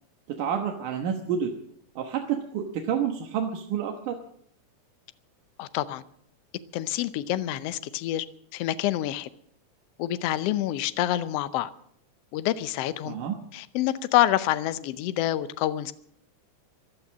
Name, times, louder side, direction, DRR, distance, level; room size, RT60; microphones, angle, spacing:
voice 1, 0.3-1.5 2.0-4.2 13.0-13.4, right 8 dB, 80° right, 2.8 m, -29 dB
voice 2, 5.6-6.0 6.7-8.2 8.5-9.3 10.0-11.7 12.3-13.2 13.5-15.9, left 13 dB, 75° left, 1.5 m, -27 dB
16.0 x 12.0 x 7.3 m
omnidirectional pair, 3.6 m